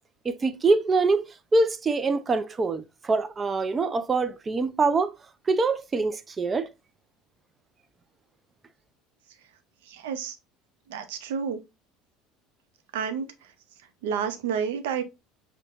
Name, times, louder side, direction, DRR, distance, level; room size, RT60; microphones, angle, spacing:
voice 1, 0.2-5.1 5.5-6.7, right 3 dB, 30° right, 0.4 m, -24 dB
voice 2, 9.9-10.4 10.9-11.6 12.9-13.3 14.0-15.0, right 7 dB, 80° right, 0.6 m, -29 dB
5.4 x 2.2 x 2.4 m
hypercardioid pair, 80°, 0 cm